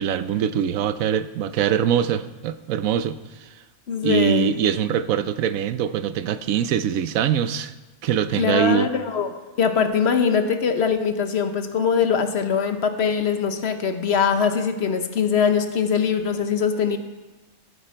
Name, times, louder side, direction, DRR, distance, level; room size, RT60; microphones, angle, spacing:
voice 1, 0.0-3.5 4.0-7.7 8.0-8.9, right 9 dB, 75° right, 12 dB, 1.0 m, -23 dB
voice 2, 3.9-4.5 8.4-9.3 9.6-17.0, left 6 dB, 50° left, 8 dB, 1.1 m, -22 dB
15.0 x 8.8 x 4.4 m, 1.1 s
omnidirectional pair, 1.5 m